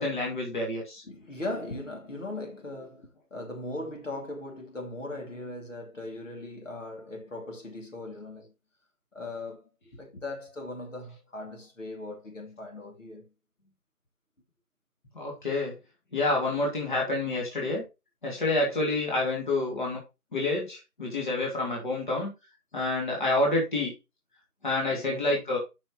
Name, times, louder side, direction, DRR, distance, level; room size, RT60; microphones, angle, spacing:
voice 1, 0.0-1.0 15.1-15.8 16.1-17.8 18.2-20.0 20.3-22.3 22.7-23.9 24.6-25.6, left 2 dB, 30° left, 2.5 m, -28 dB
voice 2, 1.0-8.5 9.1-13.3 24.9-25.3, left 2 dB, 55° left, 2.7 m, -39 dB
9.9 x 5.8 x 3.0 m
figure-of-eight pair, 170°, 46 cm